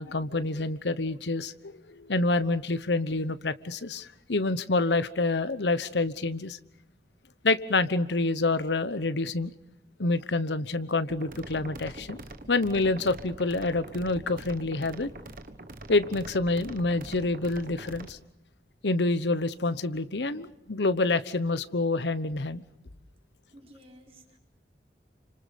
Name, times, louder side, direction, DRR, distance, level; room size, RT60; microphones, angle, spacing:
voice 1, 0.0-6.6 7.4-9.5 10.0-12.2 12.5-15.1 15.9-18.2 18.8-22.6, left 2 dB, 85° left, 13 dB, 1.1 m, -27 dB
sound 1, 11.1-18.1, right 2 dB, 50° right, 1.4 m, -44 dB
voice 2, 23.5-24.4, equal, 35° right, 0 dB, 4.6 m, -53 dB
29.5 x 26.0 x 5.3 m, 0.81 s
head